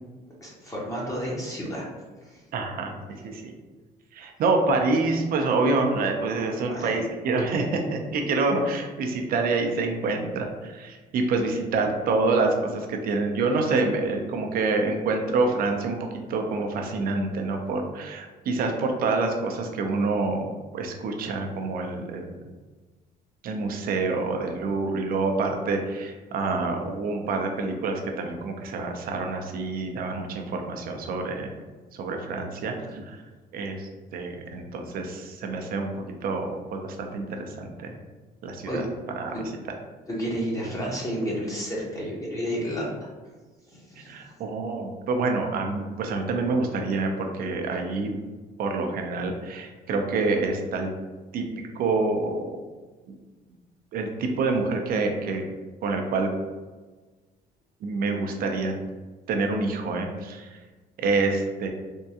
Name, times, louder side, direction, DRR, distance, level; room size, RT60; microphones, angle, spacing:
voice 1, 0.4-1.8 2.2-2.4 6.6-7.0 38.6-38.8 39.3-39.4 40.1-42.9 43.7-44.1, equal, 20° left, -4 dB, 0.8 m, -31 dB
voice 2, 2.5-2.9 3.3-3.5 4.1-16.0 16.3-20.5 20.7-22.3 23.4-31.5 31.9-33.2 33.5-35.9 36.2-37.9 38.4-38.8 39.2-39.4 44.1-48.1 48.6-50.9 51.3-51.5 51.8-52.4 53.9-55.4 55.8-56.3 57.8-58.7 59.3-60.5 61.0-61.7, right 3 dB, 60° right, 3 dB, 0.6 m, -27 dB
3.5 x 2.2 x 2.8 m, 1.3 s
cardioid pair, 110°, 17 cm